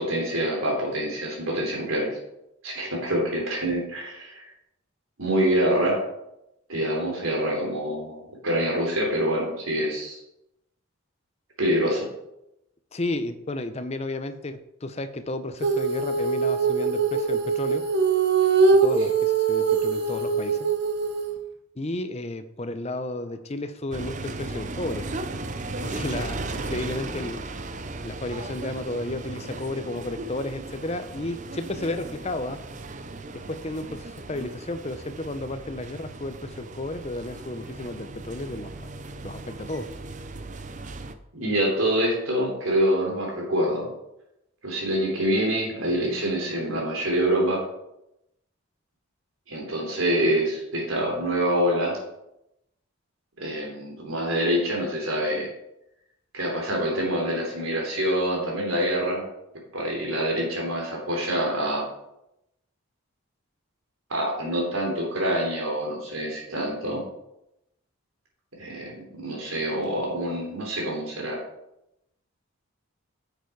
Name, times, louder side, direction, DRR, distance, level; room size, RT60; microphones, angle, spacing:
voice 1, 0.0-2.2 2.6-4.4 5.2-6.0 6.7-10.2 11.6-12.0 41.3-43.9 44.6-47.6 49.5-52.0 53.4-55.5 56.3-59.2 59.7-61.8 64.1-67.0 68.6-71.4, equal, 75° right, -1 dB, 3.3 m, -26 dB
voice 2, 12.9-17.8 18.8-20.7 21.8-25.0 25.8-27.4 28.0-32.6 33.3-38.7 39.2-39.9, left 2 dB, 30° left, 10 dB, 0.6 m, -33 dB
Female singing, 15.6-21.3, right 5 dB, 50° right, 1.0 m, -22 dB
sound 1, 23.9-41.1, right 2 dB, 35° right, 0.6 m, -36 dB
9.1 x 7.1 x 4.6 m, 0.85 s
head